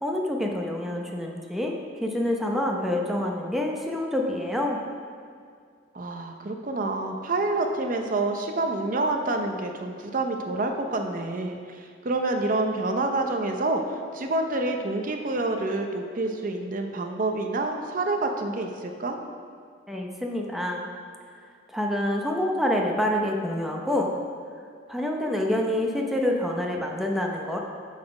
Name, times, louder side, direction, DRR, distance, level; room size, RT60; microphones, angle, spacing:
voice 1, 0.0-4.8 19.9-20.8 21.7-24.1 24.9-27.6, left 1 dB, ahead, 0 dB, 0.7 m, -27 dB
voice 2, 5.9-19.2, right 2 dB, 45° right, 4 dB, 0.6 m, -28 dB
12.5 x 4.2 x 4.8 m, 2.1 s
head